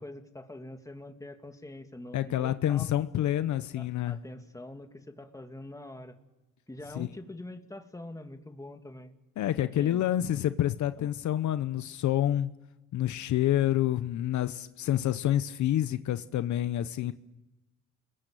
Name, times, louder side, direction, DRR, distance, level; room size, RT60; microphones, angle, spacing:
voice 1, 0.0-2.9 3.7-6.2 6.7-9.1 9.6-10.0 11.0-11.1, left 1 dB, 10° left, 5 dB, 2.6 m, -44 dB
voice 2, 2.1-4.2 7.0-7.1 9.4-12.5 12.9-17.1, left 12 dB, 70° left, 12 dB, 0.9 m, -28 dB
29.5 x 22.0 x 9.2 m, 1.1 s
cardioid pair, 90°, 30 cm